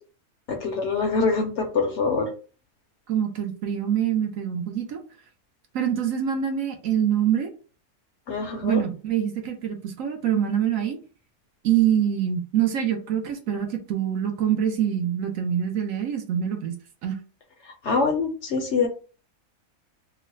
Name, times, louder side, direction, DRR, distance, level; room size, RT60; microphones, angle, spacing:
voice 1, 0.5-2.3 8.3-8.8 17.6-18.9, left 4 dB, 65° left, 2 dB, 0.8 m, -24 dB
voice 2, 3.1-5.0 5.7-7.5 8.6-11.0 11.6-17.2, right 9 dB, 70° right, 5 dB, 0.9 m, -25 dB
3.1 x 2.1 x 3.7 m, 0.37 s
omnidirectional pair, 1.6 m